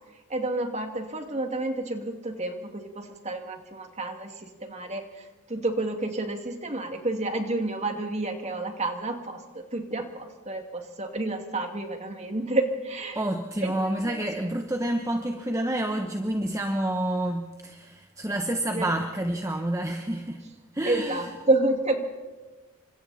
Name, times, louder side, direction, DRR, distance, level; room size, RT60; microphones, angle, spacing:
voice 1, 0.3-13.2 13.6-14.2 18.7-18.9 20.8-22.0, right 2 dB, 30° right, 4 dB, 2.3 m, -30 dB
voice 2, 13.1-20.4 20.7-21.4, right 1 dB, 15° right, 4 dB, 1.0 m, -29 dB
29.5 x 25.0 x 4.2 m, 1.2 s
head